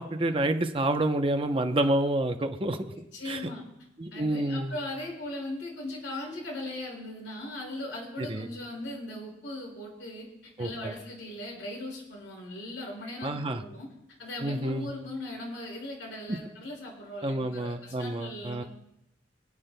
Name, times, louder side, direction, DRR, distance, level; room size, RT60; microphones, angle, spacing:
voice 1, 0.0-2.9 3.3-3.5 4.0-4.8 8.2-8.5 10.6-10.9 13.2-13.6 14.4-14.9 16.3-16.4 17.2-18.6, right 1 dB, 30° right, 6 dB, 0.7 m, -28 dB
voice 2, 2.9-3.6 4.1-10.3 10.6-13.9 14.2-18.7, left 1 dB, 90° left, -2 dB, 5.4 m, -39 dB
27.0 x 9.8 x 2.2 m, 0.83 s
head